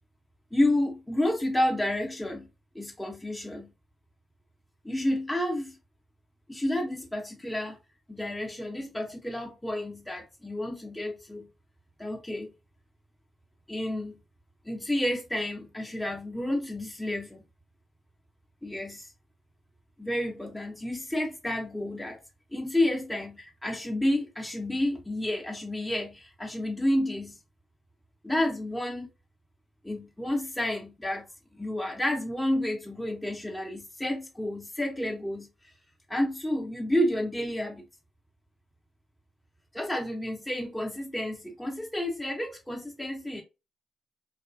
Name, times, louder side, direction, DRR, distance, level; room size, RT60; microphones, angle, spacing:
voice 1, 0.5-2.5 2.7-3.7 4.8-5.8 6.5-7.8 8.1-11.5 12.0-12.5 13.7-14.2 14.7-17.5 18.6-19.1 20.0-22.2 22.5-27.4 28.2-29.1 29.8-31.3 31.5-35.5 36.1-37.9 39.7-43.4, left 1 dB, 10° left, 0.6 m, -30 dB
2.4 x 2.2 x 2.4 m
supercardioid pair, 55°, 0 cm